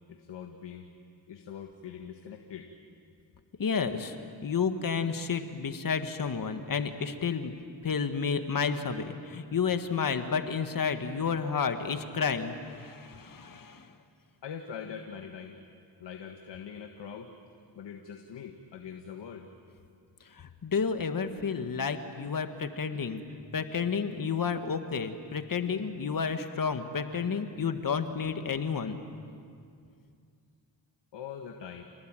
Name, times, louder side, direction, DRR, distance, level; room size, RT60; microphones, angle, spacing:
voice 1, 0.1-0.9 1.3-2.7 14.4-15.6 16.0-17.3 17.8-19.5 31.1-31.8, left 7 dB, 70° left, 4 dB, 1.8 m, -42 dB
voice 2, 3.6-4.1 4.4-7.5 7.8-13.9 20.6-23.2 23.5-29.0, left 6 dB, 50° left, 8 dB, 1.8 m, -31 dB
28.5 x 19.0 x 9.1 m, 2.3 s
cardioid pair, 75°, 44 cm